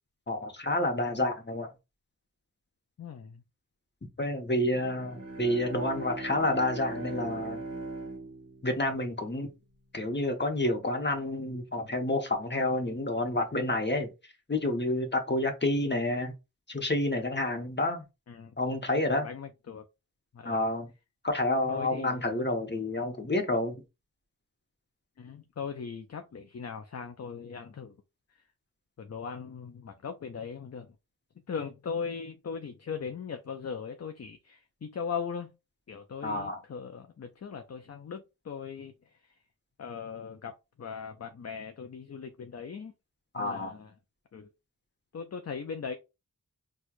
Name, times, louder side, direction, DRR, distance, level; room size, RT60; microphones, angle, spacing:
voice 1, 0.3-1.7 4.2-7.6 8.6-9.5 9.9-14.1 14.5-16.3 16.7-18.0 18.6-19.3 20.4-20.9 21.2-23.8 36.2-36.6 43.3-43.7, left 1 dB, 30° left, 1.0 m, -29 dB
voice 2, 3.0-3.4 18.3-18.5 19.2-19.8 20.3-20.6 21.7-22.2 25.2-27.9 29.0-30.9 31.5-35.5 35.9-38.9 39.8-40.5 40.8-42.9 43.3-43.9 44.3-44.5 45.1-45.9, left 6 dB, 45° left, 0.5 m, -39 dB
Bowed string instrument, 4.7-9.5, right 2 dB, 40° right, 1.1 m, -40 dB
4.4 x 2.3 x 2.4 m
wide cardioid pair, 45°, 37 cm